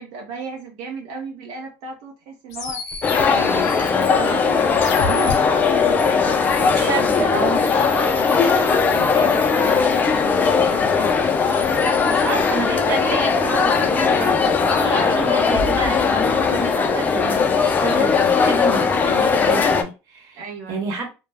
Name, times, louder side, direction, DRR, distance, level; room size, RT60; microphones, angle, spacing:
voice 1, 0.0-7.1 7.9-10.9 20.3-20.8, right 4 dB, 90° right, 0.6 m, -35 dB
sound 1, 2.5-5.4 7.7-10.5 11.3-12.5, left 4 dB, 60° left, 0.7 m, -32 dB
sound 2, 3.0-19.8, left 5 dB, 25° left, 0.4 m, -19 dB
voice 2, 6.6-7.6 12.1-17.4 17.8-20.4 20.7-21.1, right 4 dB, 55° right, 1.0 m, -28 dB
2.2 x 2.0 x 3.3 m
cardioid pair, 140°, 7 cm